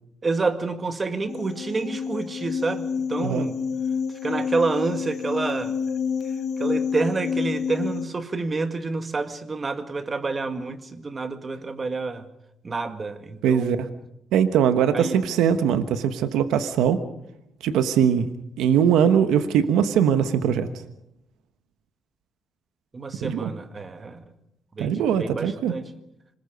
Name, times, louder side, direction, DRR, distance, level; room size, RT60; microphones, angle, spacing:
voice 1, 0.2-3.6 4.2-5.7 6.6-12.3 12.6-13.8 14.9-15.2 22.9-24.2 24.8-25.9, right 3 dB, 30° right, 9 dB, 1.9 m, -28 dB
sound 1, 1.3-8.1, left 6 dB, 65° left, 1.0 m, -28 dB
voice 2, 13.4-13.9 14.3-17.0 17.6-18.3 18.6-20.7 23.2-23.5 24.8-25.7, right 8 dB, 90° right, 10 dB, 1.1 m, -21 dB
26.5 x 20.5 x 5.2 m, 0.81 s
cardioid pair, 90°, 0 cm